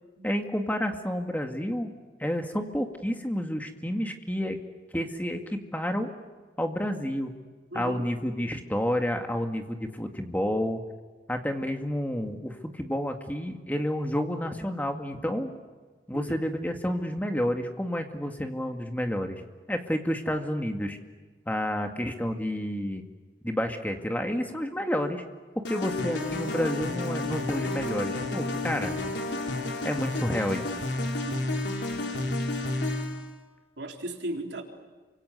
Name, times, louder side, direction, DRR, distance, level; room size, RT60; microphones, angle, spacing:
voice 1, 0.2-1.9 2.2-4.6 4.9-6.1 6.6-7.3 7.7-10.8 11.3-15.5 16.1-21.0 21.5-23.0 23.4-25.2 25.6-28.9 29.8-30.6 32.2-32.4, equal, 10° left, 4 dB, 2.1 m, -30 dB
voice 2, 7.7-8.0 16.1-16.4 31.2-31.4 33.8-34.6, right 1 dB, 85° right, 2 dB, 3.9 m, -36 dB
sound 1, 25.6-33.3, left 2 dB, 85° left, 3.4 m, -31 dB
28.5 x 25.0 x 8.2 m, 1.3 s
head